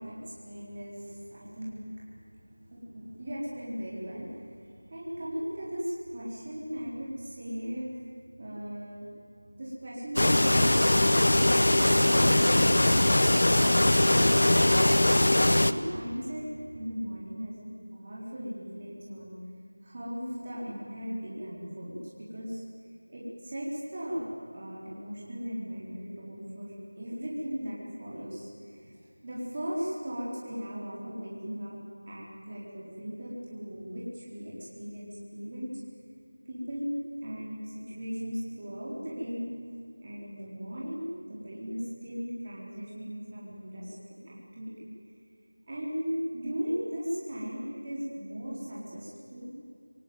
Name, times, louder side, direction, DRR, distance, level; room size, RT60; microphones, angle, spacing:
voice 1, 0.0-2.1 2.7-7.9 8.4-9.1 9.5-11.0 11.7-14.6 15.3-19.3 19.8-22.0 22.3-22.6 23.1-24.3 24.5-28.9 29.2-31.7 32.1-35.7 36.5-36.9 37.2-39.5 40.0-43.9 44.2-44.9 45.7-49.5, equal, 20° right, -7 dB, 4.0 m, -37 dB
sound 1, 10.2-15.7, left 1 dB, 45° left, 0.9 m, -21 dB
27.0 x 19.0 x 9.4 m, 2.4 s
figure-of-eight pair, 180°, 0 cm